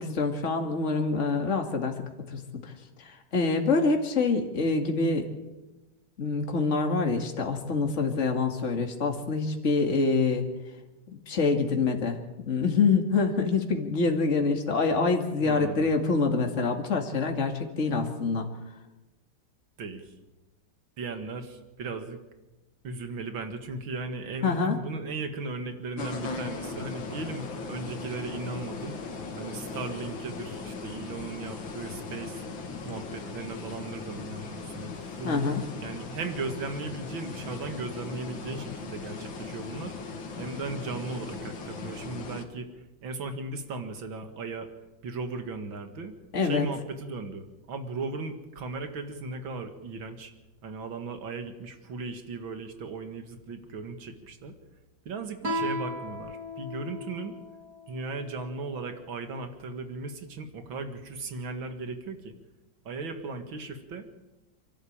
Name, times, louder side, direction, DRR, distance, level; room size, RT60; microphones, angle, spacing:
voice 1, 0.0-2.7 3.0-5.3 6.2-10.5 11.1-12.2 12.4-18.5 24.4-24.8 35.2-35.6 46.3-46.7, left 4 dB, 40° left, 4 dB, 2.4 m, -26 dB
voice 2, 15.4-15.9 19.8-20.1 21.0-22.2 22.8-29.0 29.4-32.4 32.8-35.4 35.8-39.9 40.4-44.7 45.0-46.1 46.4-50.3 50.6-54.5 55.1-57.4 57.9-62.3 62.8-64.1, right 3 dB, 85° right, 7 dB, 2.7 m, -37 dB
sound 1, 26.0-42.5, left 4 dB, 80° left, 2.8 m, -38 dB
Guitar, 55.4-58.7, equal, 55° right, 4.2 m, -36 dB
29.0 x 12.0 x 8.8 m, 1.1 s
omnidirectional pair, 2.1 m